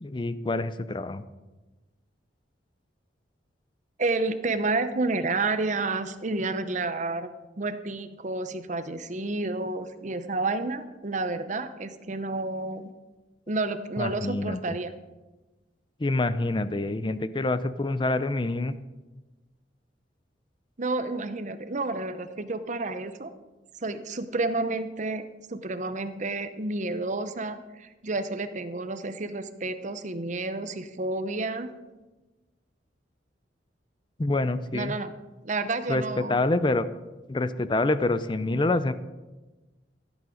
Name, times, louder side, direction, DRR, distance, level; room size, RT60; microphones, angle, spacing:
voice 1, 0.0-1.2 14.0-14.8 16.0-18.8 34.2-35.0 35.9-36.9 37.3-38.9, left 2 dB, 25° left, 14 dB, 0.5 m, -26 dB
voice 2, 4.0-7.3 7.6-12.9 13.5-14.9 16.8-16.9 20.8-23.3 23.8-31.7 34.7-35.1 35.4-36.4, right 3 dB, 40° right, 10 dB, 0.8 m, -30 dB
14.5 x 8.4 x 5.1 m, 1.1 s
head